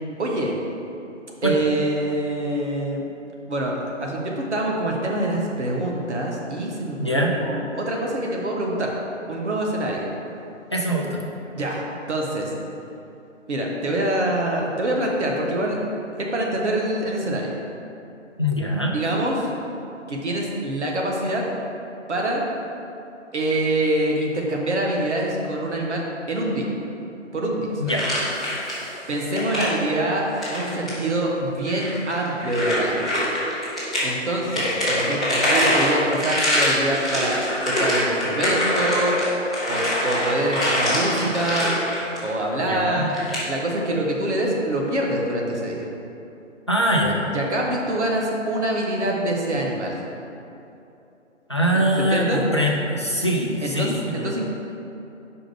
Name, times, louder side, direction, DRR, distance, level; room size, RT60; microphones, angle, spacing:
voice 1, 0.2-0.5 1.4-3.1 3.5-8.9 9.3-10.0 11.5-12.5 13.5-15.8 16.2-17.5 18.9-19.5 20.1-21.4 22.1-22.4 23.3-26.0 26.3-26.7 27.3-27.9 29.1-33.1 34.0-39.2 39.7-41.7 42.2-43.1 43.5-45.9 47.3-50.0 51.7-52.5 53.6-54.4, right 1 dB, 60° right, -1 dB, 1.4 m, -25 dB
voice 2, 7.0-7.4 10.7-11.2 18.4-18.9 27.8-28.0 42.7-43.1 46.7-47.2 51.5-54.3, equal, 25° left, -2 dB, 0.4 m, -22 dB
sound 1, 27.9-28.9 29.2-29.7 30.3-31.0 31.7-34.0 34.4-42.3 43.1-43.4, equal, ahead, 0.8 m, -24 dB
5.8 x 5.1 x 5.1 m, 2.8 s
figure-of-eight pair, 150°, 38 cm